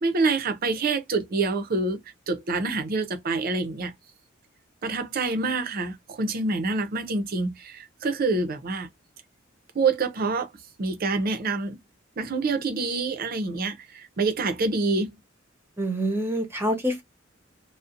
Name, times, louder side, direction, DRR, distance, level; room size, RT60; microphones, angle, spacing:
voice 1, 0.0-2.0 2.3-3.9 4.8-8.9 9.7-10.5 10.8-11.8 12.2-15.1, right 3 dB, 45° right, 0.5 m, -26 dB
voice 2, 15.8-17.0, right 1 dB, 10° right, 0.8 m, -26 dB
2.5 x 2.0 x 2.4 m
head